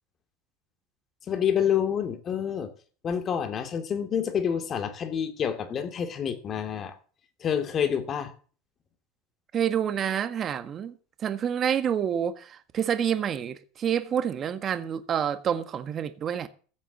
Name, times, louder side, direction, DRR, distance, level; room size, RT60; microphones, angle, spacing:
voice 1, 1.3-2.7 3.0-6.9 7.4-8.3, left 8 dB, 30° left, 2.6 m, -28 dB
voice 2, 9.5-16.5, right 8 dB, 30° right, 1.5 m, -28 dB
15.0 x 7.5 x 7.2 m
supercardioid pair, 135°, 0 cm